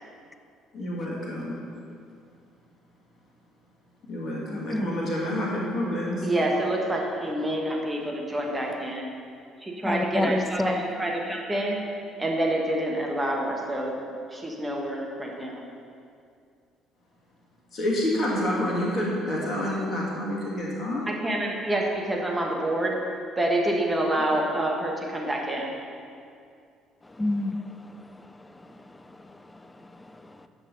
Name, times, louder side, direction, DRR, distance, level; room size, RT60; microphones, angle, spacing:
voice 1, 0.7-1.6 4.1-6.3 17.7-21.1, left 1 dB, 40° left, -4 dB, 1.9 m, -28 dB
voice 2, 4.5-4.9 9.8-10.8 27.1-30.5, left 2 dB, 15° left, 10 dB, 0.4 m, -31 dB
voice 3, 6.2-9.1 9.6-11.8 12.2-14.0 14.3-15.6 21.1-22.9 23.3-25.7, right 1 dB, 15° right, -1 dB, 1.4 m, -27 dB
8.7 x 6.0 x 4.0 m, 2.4 s
figure-of-eight pair, 50°, 0 cm